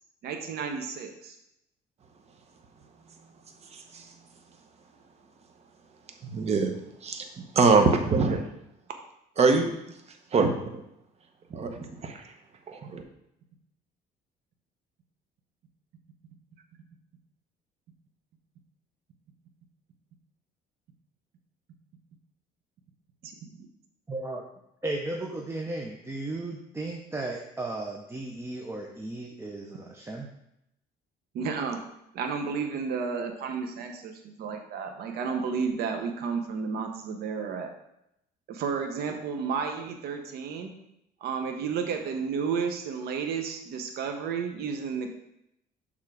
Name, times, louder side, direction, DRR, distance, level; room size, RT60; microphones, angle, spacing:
voice 1, 0.2-1.4 23.2-23.3 31.3-31.8 32.1-37.7 38.5-40.7 41.2-45.1, right 5 dB, 70° right, 4 dB, 0.7 m, -32 dB
voice 2, 6.3-6.8 7.0-7.2 7.5-8.4 9.4-9.7 10.3-10.5 11.5-12.2 12.7-13.0, right 4 dB, 40° right, 5 dB, 0.9 m, -23 dB
voice 3, 24.1-24.4 24.8-30.3, right 2 dB, 15° right, 1 dB, 0.6 m, -35 dB
6.6 x 3.6 x 4.8 m, 0.81 s
cardioid pair, 110°, 17 cm